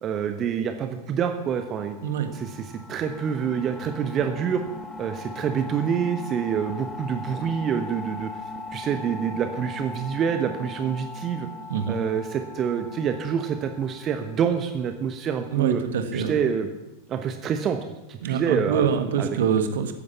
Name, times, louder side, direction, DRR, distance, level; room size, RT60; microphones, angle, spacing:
voice 1, 0.0-2.0 2.3-4.6 5.0-8.3 8.7-11.5 11.9-15.8 16.1-16.7 17.1-17.8 18.1-18.9 19.2-19.4, right 7 dB, 30° right, 7 dB, 1.2 m, -27 dB
sound 1, 1.5-14.9, left 2 dB, ahead, 1.2 m, -39 dB
voice 2, 11.7-12.0 15.5-16.3 18.2-19.9, right 7 dB, 55° right, 8 dB, 1.7 m, -25 dB
14.5 x 10.5 x 7.2 m, 1.0 s
figure-of-eight pair, 90°, 0 cm